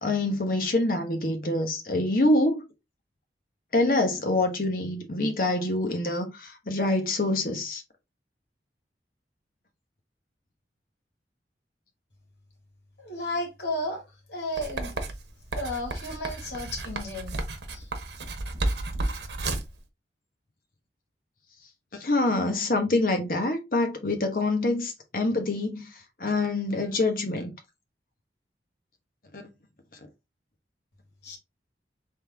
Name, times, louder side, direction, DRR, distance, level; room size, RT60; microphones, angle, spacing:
voice 1, 0.0-2.7 3.7-7.8 22.0-25.9 26.2-27.5 29.3-29.4, left 2 dB, 50° left, 1.1 m, -26 dB
voice 2, 13.0-15.0 15.5-17.4 17.7-17.9 31.2-31.4, left 1 dB, 75° left, 1.8 m, -33 dB
Writing, 14.6-19.8, right 2 dB, 75° right, 0.9 m, -32 dB
3.9 x 3.2 x 3.4 m
head